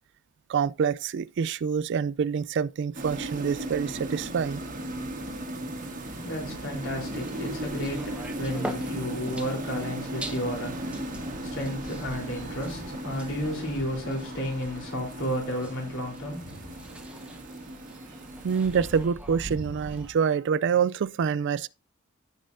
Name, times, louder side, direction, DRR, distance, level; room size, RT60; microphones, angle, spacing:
voice 1, 0.5-4.6 18.4-21.7, right 6 dB, 55° right, 0.3 m, -26 dB
sound 1, 2.9-19.1, right 1 dB, 40° right, 1.6 m, -37 dB
voice 2, 5.7-17.3, equal, 60° left, 3.6 m, -33 dB
sound 2, 7.0-20.1, right 1 dB, 5° right, 1.1 m, -43 dB
15.5 x 5.4 x 2.6 m
head